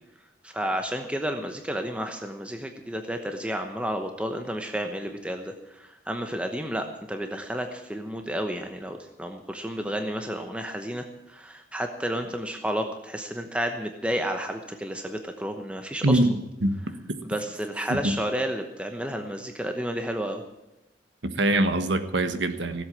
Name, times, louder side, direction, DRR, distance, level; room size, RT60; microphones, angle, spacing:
voice 1, 0.4-16.2 17.2-20.4, equal, 5° right, 5 dB, 1.0 m, -31 dB
voice 2, 16.0-16.8 17.9-18.2 21.2-22.8, right 1 dB, 85° right, 10 dB, 1.4 m, -24 dB
16.5 x 8.0 x 8.8 m, 0.94 s
head